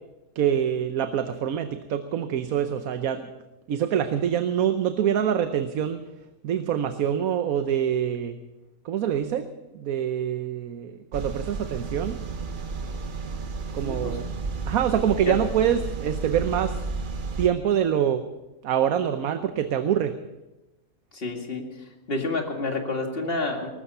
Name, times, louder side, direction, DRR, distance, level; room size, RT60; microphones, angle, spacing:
voice 1, 0.4-3.3 3.7-6.0 6.4-8.4 8.8-9.5 9.7-12.2 13.7-14.3 14.7-16.8 17.4-18.2 18.6-20.1, right 9 dB, 75° right, 9 dB, 1.3 m, -25 dB
sound 1, 11.1-17.5, right 4 dB, 40° right, 1.0 m, -32 dB
voice 2, 13.8-14.2 15.3-15.4 21.1-21.6 22.1-23.7, left 3 dB, 40° left, 3 dB, 2.3 m, -29 dB
20.0 x 12.5 x 5.5 m, 1.0 s
omnidirectional pair, 1.5 m